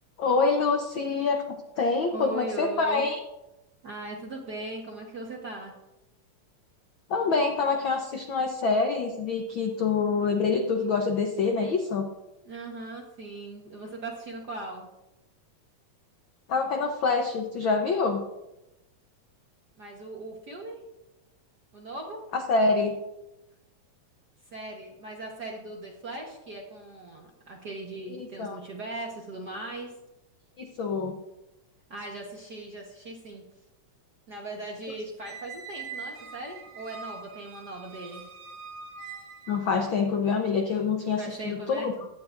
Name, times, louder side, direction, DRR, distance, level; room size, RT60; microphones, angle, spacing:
voice 1, 0.2-3.2 7.1-12.1 16.5-18.2 22.3-23.0 28.2-28.6 30.6-31.2 39.5-41.9, left 4 dB, 75° left, 4 dB, 1.1 m, -26 dB
voice 2, 2.1-3.0 3.8-5.7 12.4-14.9 19.8-20.8 21.7-22.2 24.5-29.9 31.9-33.4 34.3-38.2 41.2-41.9, right 2 dB, 55° right, 0 dB, 1.2 m, -39 dB
Squeak, 35.2-39.7, right 5 dB, 80° right, 2.7 m, -43 dB
16.0 x 11.5 x 2.6 m, 0.96 s
omnidirectional pair, 3.4 m